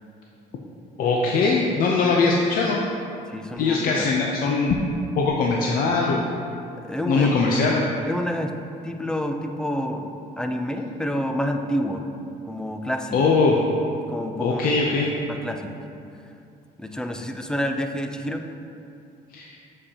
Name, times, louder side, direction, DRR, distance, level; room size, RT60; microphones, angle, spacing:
voice 1, 1.0-2.8 3.6-4.8 5.2-6.3 7.1-7.8 13.1-13.6 14.4-15.1 19.3-19.5, left 4 dB, 60° left, -1 dB, 0.6 m, -21 dB
voice 2, 3.3-4.1 6.8-7.3 8.1-8.6 8.8-12.1 12.5-13.3 14.1-14.6 15.3-15.9 16.8-18.5, equal, 5° left, 5 dB, 0.4 m, -28 dB
7.5 x 6.5 x 2.9 m, 2.6 s
cardioid pair, 110°, 17 cm